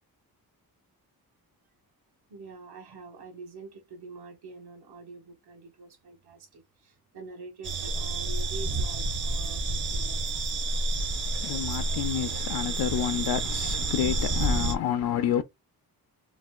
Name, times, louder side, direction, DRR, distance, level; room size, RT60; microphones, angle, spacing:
voice 1, 2.3-10.2, right 4 dB, 80° right, 1.3 m, -45 dB
sound 1, 7.6-14.8, right 2 dB, 30° right, 0.6 m, -29 dB
voice 2, 11.0-15.4, left 10 dB, 80° left, 0.5 m, -29 dB
4.0 x 2.4 x 2.2 m
wide cardioid pair, 155°, 38 cm